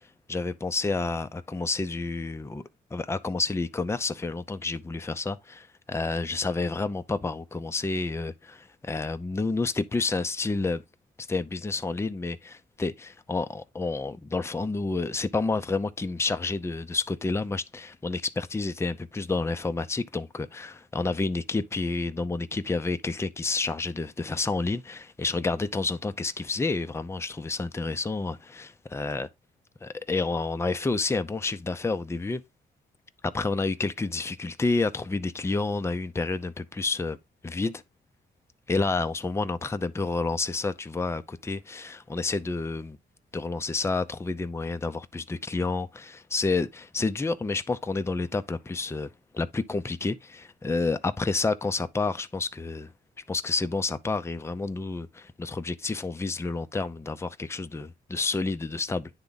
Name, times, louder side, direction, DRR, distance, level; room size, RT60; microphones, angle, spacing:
voice 1, 0.3-2.6 2.9-10.8 11.3-29.3 29.8-32.4 33.2-37.2 37.4-37.8 38.7-43.0 43.3-52.9 53.3-59.1, left 3 dB, 15° left, 0.5 m, -29 dB
9.6 x 3.5 x 3.9 m
cardioid pair, 90°, 20 cm